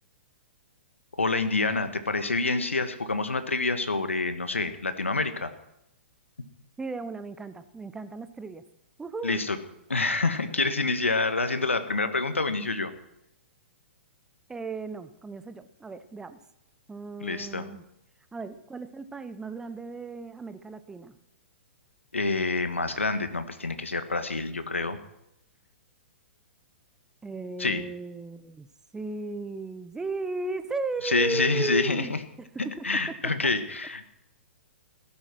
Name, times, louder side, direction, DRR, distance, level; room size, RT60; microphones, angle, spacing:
voice 1, 1.1-5.5 9.2-9.6 9.9-12.9 17.2-17.6 22.1-25.0 27.6-27.8 31.0-32.2 32.8-34.0, left 3 dB, 85° left, 10 dB, 1.7 m, -27 dB
voice 2, 6.8-8.6 9.0-9.4 14.5-16.4 16.9-17.8 18.3-21.2 27.2-32.9, right 3 dB, 10° right, 12 dB, 0.9 m, -35 dB
17.5 x 10.5 x 6.1 m, 0.84 s
figure-of-eight pair, 115°, 7 cm